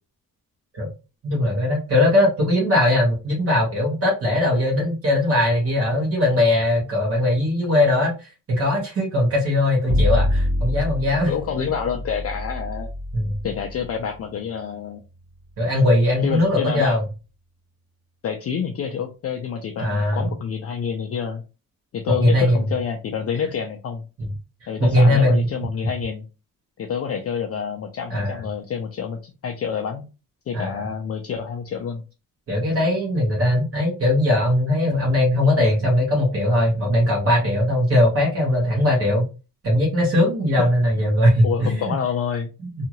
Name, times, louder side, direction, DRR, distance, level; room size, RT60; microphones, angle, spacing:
voice 1, 1.2-11.3 13.1-13.4 15.6-17.0 19.8-20.3 22.1-22.6 24.2-24.3 24.8-25.5 28.1-28.4 30.5-30.8 32.5-39.2 39.6-41.9, left 1 dB, 40° right, -3 dB, 1.1 m, -20 dB
Bowed string instrument, 9.9-16.0, left 1 dB, 60° right, 1.2 m, -26 dB
voice 2, 11.3-12.9 13.4-15.0 16.2-17.0 18.2-21.4 21.9-24.0 24.7-26.2 26.8-30.0 30.5-32.0 40.6-40.7 41.4-42.5, left 7 dB, 45° left, 3 dB, 0.4 m, -28 dB
2.7 x 2.4 x 2.9 m, 0.30 s
cardioid pair, 150°, 35 cm